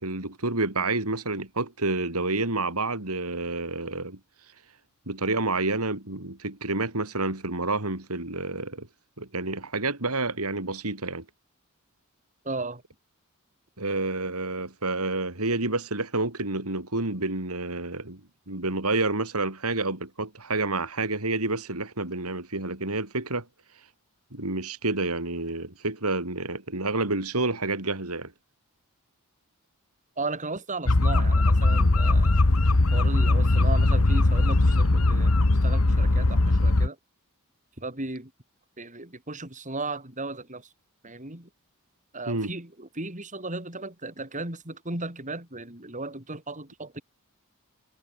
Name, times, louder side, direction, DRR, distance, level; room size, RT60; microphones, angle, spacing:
voice 1, 0.0-4.2 5.1-8.9 9.2-11.2 13.8-18.2 18.5-23.5 24.3-28.3 42.3-42.5, right 2 dB, 75° right, 4.6 m, -29 dB
voice 2, 12.4-12.8 30.2-32.4 32.9-35.3 35.6-37.0 37.8-38.3 38.8-40.7 41.0-41.5 42.1-47.0, right 2 dB, 35° right, 6.8 m, -35 dB
sound 1, 30.9-36.9, left 2 dB, 70° left, 1.3 m, -20 dB
head